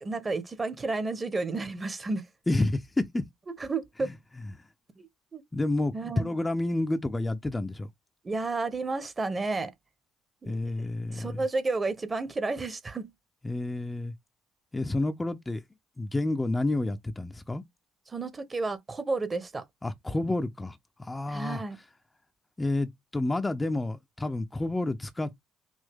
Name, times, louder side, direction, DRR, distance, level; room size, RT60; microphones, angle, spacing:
voice 1, 0.0-2.3 3.5-4.1 5.0-5.4 5.9-6.3 8.2-9.7 10.4-10.5 11.1-13.1 18.1-19.6 21.3-21.8, right 3 dB, 25° right, 1.1 m, -31 dB
voice 2, 2.5-3.3 4.5-4.6 5.5-7.9 10.5-11.4 13.4-14.1 14.7-15.6 16.0-17.6 19.8-21.6 22.6-25.3, left 2 dB, 15° left, 0.7 m, -29 dB
5.5 x 2.7 x 3.6 m
figure-of-eight pair, 50°, 0 cm